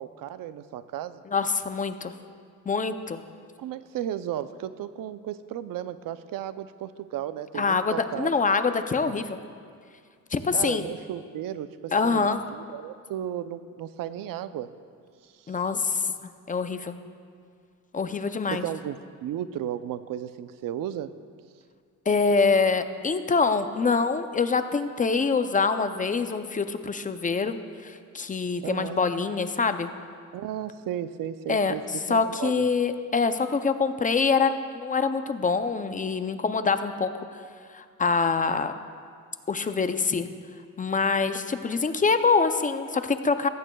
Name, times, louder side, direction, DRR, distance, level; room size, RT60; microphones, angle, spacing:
voice 1, 0.0-1.2 3.6-8.3 10.5-14.7 15.2-15.6 18.5-21.1 28.6-29.0 30.3-31.8 32.1-32.7, right 11 dB, 80° right, 12 dB, 0.6 m, -34 dB
voice 2, 1.3-2.1 2.7-3.2 7.5-9.4 10.3-10.8 11.9-12.4 15.5-17.0 17.9-18.7 22.1-27.6 27.8-29.9 31.5-31.8 32.1-37.3 37.7-38.7 39.5-40.3 40.8-43.5, left 4 dB, 25° left, 9 dB, 0.5 m, -25 dB
17.5 x 15.0 x 2.3 m, 2.2 s
cardioid pair, 125°, 33 cm